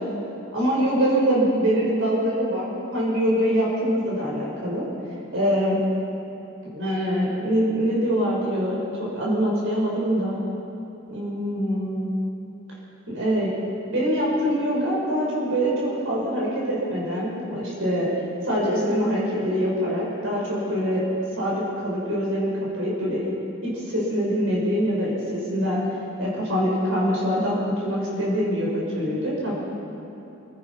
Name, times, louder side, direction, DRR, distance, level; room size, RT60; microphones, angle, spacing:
voice 1, 0.5-4.9 5.3-5.8 6.6-10.4 11.1-12.1 13.1-13.5 13.9-18.1 18.5-21.0 21.4-22.5 22.8-25.8 26.2-29.6, equal, 65° right, -5 dB, 6.0 m, -24 dB
30.0 x 15.5 x 5.8 m, 2.9 s
head